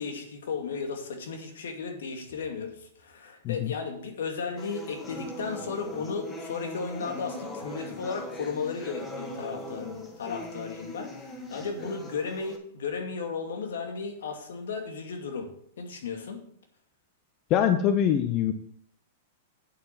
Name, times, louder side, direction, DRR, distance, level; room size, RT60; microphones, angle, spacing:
voice 1, 0.0-15.5 15.8-16.4, left 5 dB, 80° left, 4 dB, 2.4 m, -35 dB
sound 1, 4.6-12.6, left 1 dB, 20° left, 1.8 m, -40 dB
voice 2, 17.5-18.5, left 9 dB, 40° left, 8 dB, 0.8 m, -23 dB
8.5 x 7.4 x 5.7 m, 0.63 s
hypercardioid pair, 120°, 0 cm